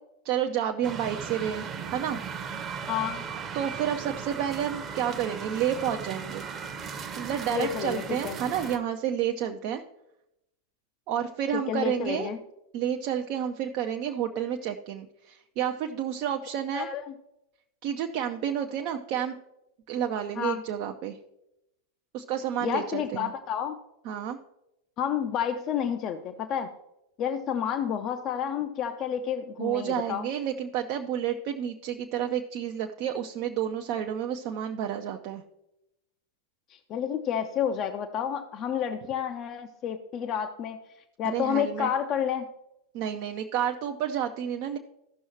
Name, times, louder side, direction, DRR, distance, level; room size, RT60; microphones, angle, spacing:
voice 1, 0.2-2.2 3.5-6.5 7.2-9.8 11.1-12.3 12.7-16.9 17.8-19.3 19.9-21.2 22.1-23.3 24.0-24.4 29.6-35.4 41.2-41.9 42.9-44.8, right 9 dB, 45° right, 4 dB, 0.6 m, -30 dB
sound 1, 0.8-8.8, right 6 dB, 25° right, 0.9 m, -37 dB
voice 2, 2.9-3.2 7.5-8.4 11.5-12.4 16.7-17.1 20.4-20.6 22.6-23.8 25.0-26.7 27.2-30.3 36.7-40.8 41.2-42.5, left 8 dB, 35° left, 7 dB, 0.6 m, -30 dB
15.0 x 6.2 x 2.9 m, 0.87 s
figure-of-eight pair, 90°, 0 cm